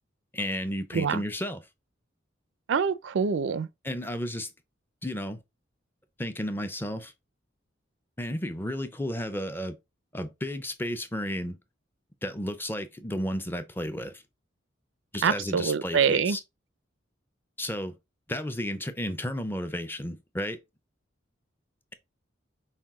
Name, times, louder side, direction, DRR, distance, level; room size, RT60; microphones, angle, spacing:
voice 1, 0.3-1.6 3.8-4.5 5.0-5.4 6.2-7.1 8.2-9.8 10.1-11.6 12.2-14.2 15.1-16.4 17.6-18.0 18.3-20.6, equal, 10° left, 0.5 m, -33 dB
voice 2, 2.7-3.7 15.2-16.4, right 6 dB, 65° right, 0.4 m, -25 dB
5.7 x 2.6 x 3.6 m
head